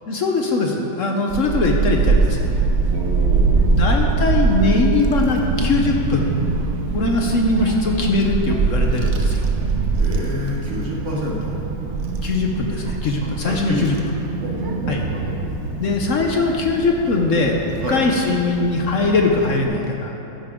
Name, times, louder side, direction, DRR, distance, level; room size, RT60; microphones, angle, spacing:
voice 1, 0.1-2.5 3.8-6.3 6.9-9.5 12.2-13.9 14.9-15.0 15.8-17.6 17.9-20.1, left 3 dB, 55° left, 1 dB, 0.9 m, -20 dB
Child speech kid speaking / Wind, 1.3-19.6, right 4 dB, 65° right, 0.7 m, -23 dB
voice 2, 2.9-4.0 10.0-11.6 13.2-14.1 14.4-15.4 17.8-18.0, equal, 45° right, -2 dB, 1.1 m, -29 dB
13.0 x 10.0 x 3.7 m, 2.9 s
omnidirectional pair, 2.2 m